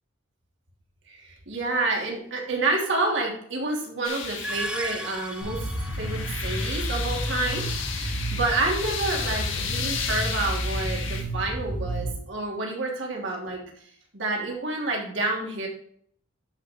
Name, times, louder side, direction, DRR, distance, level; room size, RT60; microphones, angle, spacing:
voice 1, 1.1-5.7 5.9-7.7 7.9-13.6 14.1-15.7, right 2 dB, 65° right, -1 dB, 3.2 m, -29 dB
sound 1, 4.0-11.2, left 6 dB, 80° left, 2.2 m, -34 dB
sound 2, 4.2-6.5, right 1 dB, 5° right, 0.6 m, -36 dB
sound 3, 5.4-12.1, right 1 dB, 90° right, 5.1 m, -31 dB
13.0 x 5.7 x 4.5 m, 0.62 s
head